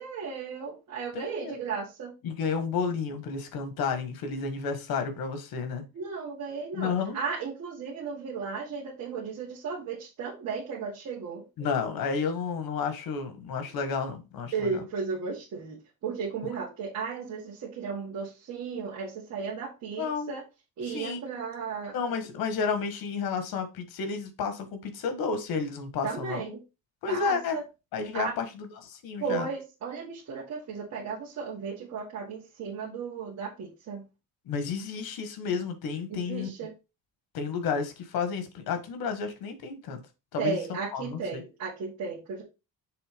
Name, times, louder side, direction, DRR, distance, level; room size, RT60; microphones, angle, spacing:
voice 1, 0.0-2.1 5.9-11.4 14.5-20.4 20.8-21.9 26.0-26.6 27.1-27.6 28.1-28.3 29.2-34.0 36.1-36.7 40.4-42.4, right 5 dB, 55° right, 2.0 m, -35 dB
voice 2, 1.1-1.6 2.2-5.8 6.7-7.2 11.6-14.8 20.0-20.3 20.9-21.2 21.9-26.4 27.0-27.6 27.9-29.5 34.5-36.5 37.3-40.0 40.3-40.6 40.9-41.4, left 5 dB, 90° left, 1.6 m, -31 dB
6.9 x 3.6 x 5.1 m
cardioid pair, 175°, 35 cm